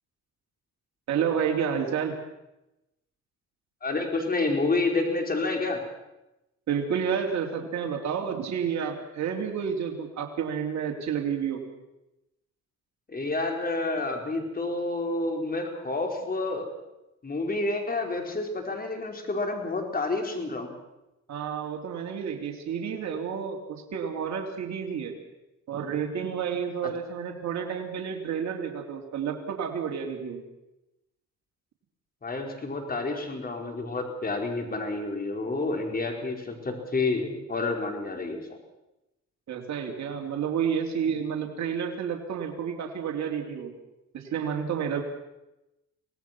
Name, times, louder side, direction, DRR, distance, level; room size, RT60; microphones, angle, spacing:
voice 1, 1.1-2.2 6.7-11.6 21.3-25.1 25.7-30.4 39.5-43.7 44.1-45.0, right 7 dB, 65° right, 1 dB, 3.2 m, -30 dB
voice 2, 3.8-5.8 13.1-16.7 17.2-20.7 32.2-38.4, left 3 dB, 30° left, 3 dB, 4.9 m, -29 dB
25.0 x 18.5 x 6.1 m, 0.94 s
cardioid pair, 90°, 30 cm